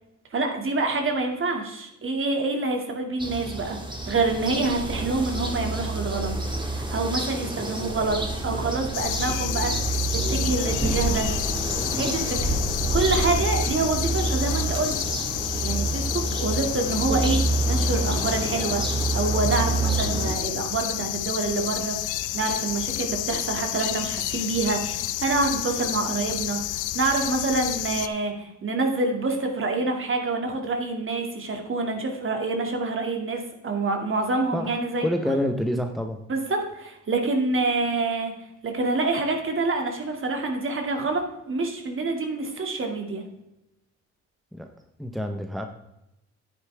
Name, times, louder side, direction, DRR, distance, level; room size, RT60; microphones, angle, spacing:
voice 1, 0.3-3.8 4.1-6.3 6.6-8.2 8.4-11.3 11.9-12.6 12.9-14.9 15.6-35.4 36.3-38.3 38.6-43.3, right 3 dB, 45° right, 3 dB, 2.3 m, -27 dB
sound 1, 3.2-20.4, right 2 dB, 15° right, 2.0 m, -28 dB
sound 2, 8.9-28.1, left 14 dB, 90° left, 0.6 m, -30 dB
voice 2, 35.0-36.2 44.5-44.7 45.0-45.7, equal, ahead, 5 dB, 0.9 m, -27 dB
9.6 x 9.2 x 3.5 m, 0.88 s
cardioid pair, 90°, 30 cm